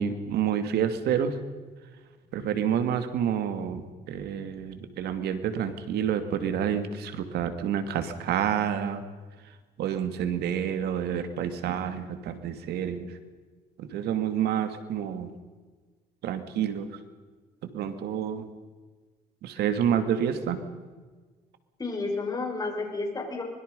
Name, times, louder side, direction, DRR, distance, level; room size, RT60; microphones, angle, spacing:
voice 1, 0.0-1.4 2.3-9.0 9.8-13.1 13.8-15.3 16.2-16.9 17.7-18.4 19.4-20.6, right 9 dB, 75° right, 9 dB, 2.5 m, -28 dB
voice 2, 21.8-23.4, left 3 dB, 20° left, 2 dB, 6.2 m, -31 dB
25.0 x 21.5 x 5.5 m, 1.4 s
cardioid pair, 110°, 17 cm